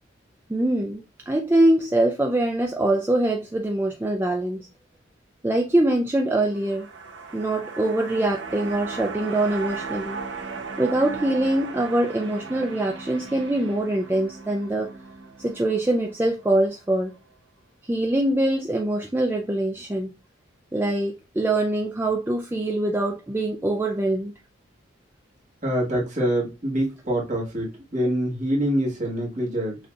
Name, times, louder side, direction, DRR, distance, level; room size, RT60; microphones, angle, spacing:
voice 1, 0.5-4.7 5.4-6.9 7.3-10.2 10.8-14.9 15.4-17.1 17.8-20.1 20.7-24.3, right 1 dB, 10° right, 0.3 m, -23 dB
sound 1, 6.4-16.8 17.2-17.3, right 4 dB, 60° right, 0.7 m, -37 dB
voice 2, 25.6-29.8, equal, 40° right, 1.5 m, -25 dB
6.3 x 2.8 x 2.3 m
head